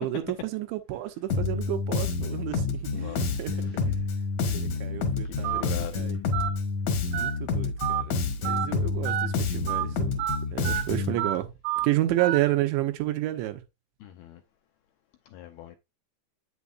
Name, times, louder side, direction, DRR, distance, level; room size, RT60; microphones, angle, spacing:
voice 1, 0.0-3.9 4.5-6.2 7.1-10.2 10.5-11.5 11.8-13.6, right 15 dB, 90° right, 3.3 m, -30 dB
Bass guitar, 1.3-11.2, left 4 dB, 65° left, 1.7 m, -29 dB
voice 2, 2.9-3.8 5.3-6.0 14.0-14.4 15.3-15.8, left 13 dB, 85° left, 2.2 m, -42 dB
Telephone, 5.4-5.6 6.3-6.5 7.1-7.3 7.8-8.0 8.5-8.7 9.1-9.3 9.7-9.8 10.2-10.4 10.7-10.8 11.2-11.4 11.7-11.9 12.2-12.4, right 12 dB, 70° right, 2.5 m, -28 dB
8.4 x 7.4 x 2.5 m
omnidirectional pair, 5.1 m